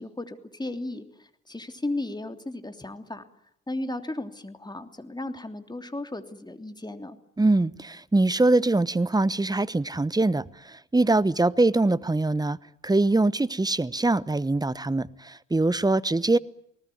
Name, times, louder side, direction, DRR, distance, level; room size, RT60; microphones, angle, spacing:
voice 1, 0.0-3.2 3.7-7.2, left 2 dB, 10° left, 7 dB, 3.1 m, -35 dB
voice 2, 7.4-12.6 12.8-16.4, right 2 dB, 10° right, 19 dB, 1.0 m, -23 dB
29.0 x 19.0 x 9.4 m, 0.76 s
hypercardioid pair, 50°, 35 cm